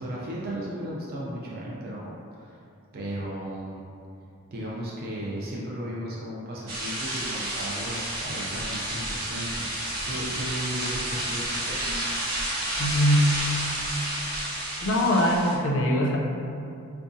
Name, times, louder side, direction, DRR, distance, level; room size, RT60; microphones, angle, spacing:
voice 1, 0.0-2.6 2.9-3.9 4.5-12.0, right 1 dB, 45° right, -5 dB, 0.4 m, -35 dB
sound 1, 6.7-15.5, right 1 dB, 70° right, 1.1 m, -31 dB
voice 2, 12.8-13.3 14.8-16.2, equal, 60° left, -1 dB, 0.5 m, -22 dB
4.9 x 2.3 x 2.6 m, 2.5 s
head